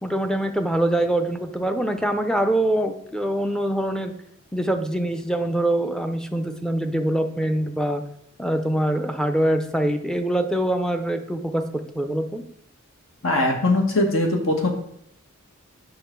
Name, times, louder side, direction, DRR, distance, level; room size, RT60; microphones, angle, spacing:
voice 1, 0.0-4.1 4.5-8.0 8.4-11.7 11.9-12.4, right 1 dB, 5° left, 7 dB, 0.6 m, -24 dB
voice 2, 13.2-14.7, left 2 dB, 65° left, 2 dB, 1.7 m, -21 dB
8.6 x 5.7 x 4.6 m, 0.74 s
head